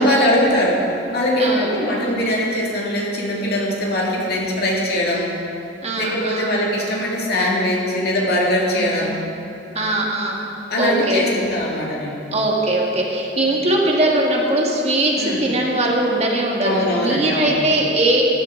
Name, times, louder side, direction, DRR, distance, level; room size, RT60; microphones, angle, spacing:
voice 1, 0.0-5.4 6.0-9.2 10.7-12.2 13.4-13.6 15.2-15.5 16.6-17.6, left 1 dB, 60° left, -2 dB, 2.3 m, -21 dB
voice 2, 1.4-2.0 5.8-6.5 8.7-9.0 9.7-10.4 10.8-11.2 12.3-18.2, right 1 dB, 35° right, -1 dB, 1.7 m, -20 dB
15.0 x 11.5 x 3.8 m, 2.9 s
head